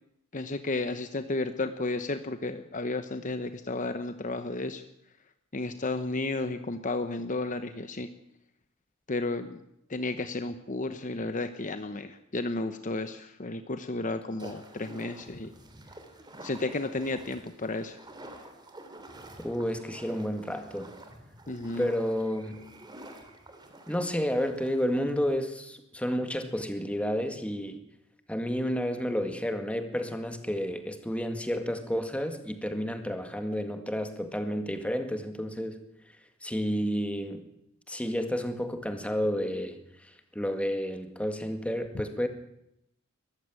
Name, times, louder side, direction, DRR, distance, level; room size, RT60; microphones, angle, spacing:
voice 1, 0.3-4.8 5.5-8.1 9.1-9.6 9.9-15.5 16.4-18.0 21.5-21.9, left 2 dB, 35° left, 9 dB, 1.0 m, -33 dB
sound 1, 14.4-25.4, right 1 dB, 20° right, 2.9 m, -49 dB
voice 2, 19.4-20.9 21.8-22.6 23.9-27.8 28.3-35.8 36.4-37.4 37.9-42.3, equal, 5° left, 7 dB, 1.9 m, -31 dB
22.0 x 14.5 x 9.0 m, 0.81 s
head